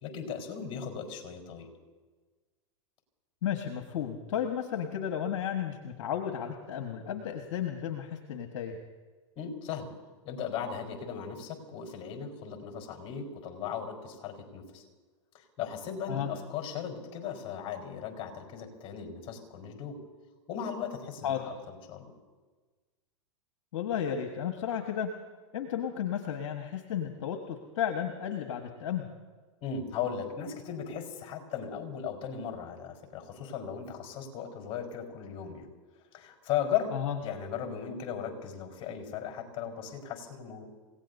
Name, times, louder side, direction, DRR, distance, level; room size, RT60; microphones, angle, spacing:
voice 1, 0.0-1.7 9.4-9.9 10.2-14.8 15.6-20.0 20.5-21.5 21.9-22.1 29.6-35.7 36.1-36.9 37.2-40.7, left 8 dB, 40° left, 2 dB, 4.3 m, -37 dB
voice 2, 3.4-8.8 16.1-16.3 21.2-21.4 23.7-25.1 25.5-29.1 36.9-37.2, left 9 dB, 70° left, 4 dB, 1.5 m, -33 dB
30.0 x 17.5 x 2.7 m, 1.4 s
hypercardioid pair, 105°, 16 cm